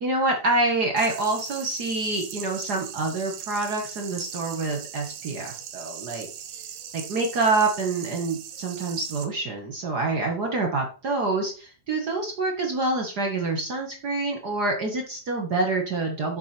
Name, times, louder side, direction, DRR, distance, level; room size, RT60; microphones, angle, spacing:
voice 1, 0.0-6.3 6.9-16.4, right 3 dB, 60° right, 1 dB, 1.0 m, -26 dB
sound 1, 1.0-9.3, right 9 dB, 85° right, 2.9 m, -39 dB
7.7 x 4.7 x 5.9 m, 0.37 s
omnidirectional pair, 4.0 m